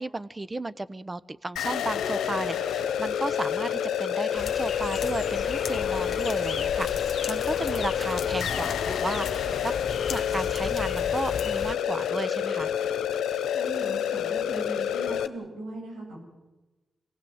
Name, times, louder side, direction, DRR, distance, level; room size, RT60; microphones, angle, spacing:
voice 1, 0.0-9.7 10.1-12.7, right 2 dB, 30° right, 16 dB, 1.1 m, -34 dB
sound 1, 1.6-15.3, left 9 dB, 85° left, 1.1 m, -28 dB
sound 2, 4.4-11.7, left 6 dB, 65° left, 0.7 m, -36 dB
voice 2, 13.5-16.2, right 1 dB, 90° right, -1 dB, 7.9 m, -39 dB
26.5 x 18.0 x 8.1 m, 1.1 s
supercardioid pair, 45°, 0 cm